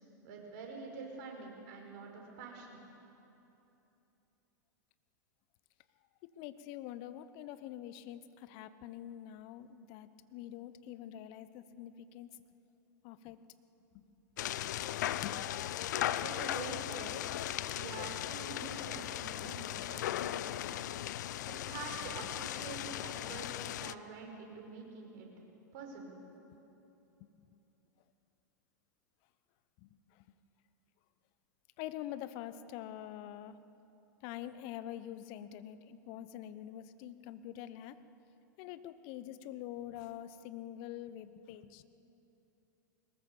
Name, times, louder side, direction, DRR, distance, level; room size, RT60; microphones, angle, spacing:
voice 1, 0.2-2.8 15.9-17.3 17.7-20.8 21.5-25.3 25.7-26.2, right 4 dB, 55° right, 1 dB, 5.6 m, -46 dB
voice 2, 6.2-12.4 13.0-13.4 13.9-14.0 14.6-14.7 15.0-15.4 19.8-20.2 23.2-23.4 27.2-27.3 29.8-29.9 30.2-30.3 31.8-33.6 34.2-38.0 38.6-41.8, left 12 dB, 50° left, 13 dB, 1.0 m, -45 dB
sound 1, 14.4-23.9, left 13 dB, 65° left, 0.6 m, -37 dB
21.5 x 20.0 x 7.2 m, 2.9 s
hypercardioid pair, 95°, 10 cm